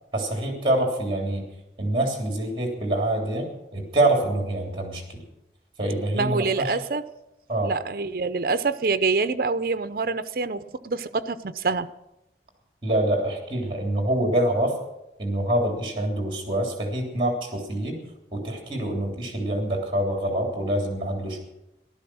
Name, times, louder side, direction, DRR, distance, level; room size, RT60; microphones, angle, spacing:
voice 1, 0.1-1.5 1.8-5.2 5.8-6.7 7.5-7.7 12.8-14.7 15.2-18.0 18.3-21.4, right 1 dB, 30° right, 3.3 m, -25 dB
voice 2, 6.1-7.1 7.6-11.9, right 4 dB, 55° right, 0.6 m, -26 dB
15.0 x 12.5 x 6.3 m
head